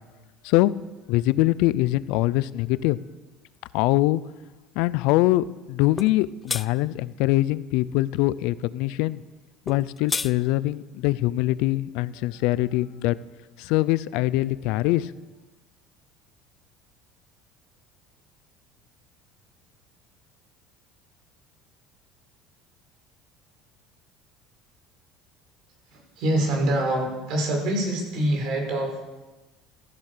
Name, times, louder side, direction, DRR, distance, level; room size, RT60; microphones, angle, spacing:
voice 1, 1.1-3.0 3.7-4.2 4.8-9.2 9.7-13.2 13.6-15.1, left 17 dB, 75° left, 17 dB, 0.6 m, -23 dB
sound 1, 6.0-6.1 6.5-6.7 9.7-10.3, left 5 dB, 20° left, 0.4 m, -29 dB
voice 2, 25.9-29.0, right 1 dB, 65° right, 3 dB, 5.2 m, -25 dB
15.0 x 13.5 x 6.8 m, 1.1 s
cardioid pair, 125°, 0 cm